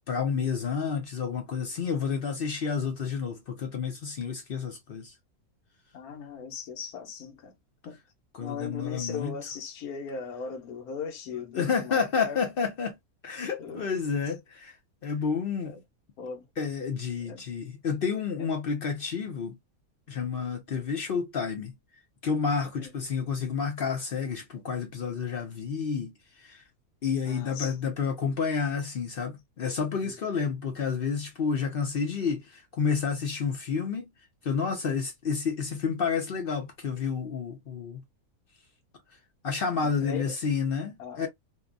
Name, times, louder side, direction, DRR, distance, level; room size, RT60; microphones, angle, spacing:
voice 1, 0.1-5.1 8.3-9.4 11.5-13.0 13.2-14.8 15.0-15.7 16.6-19.6 20.1-21.8 22.2-26.1 26.4-26.6 27.0-34.1 34.4-38.0 39.4-41.3, left 6 dB, 60° left, 0.6 m, -30 dB
voice 2, 5.9-7.5 7.8-8.0 8.4-12.4 13.6-13.8 15.6-15.8 16.2-16.5 17.3-17.4 18.4-18.5 22.8-22.9 27.3-27.8 39.8-40.3 41.0-41.3, left 6 dB, 85° left, 1.1 m, -38 dB
2.7 x 2.2 x 2.4 m
omnidirectional pair, 1.5 m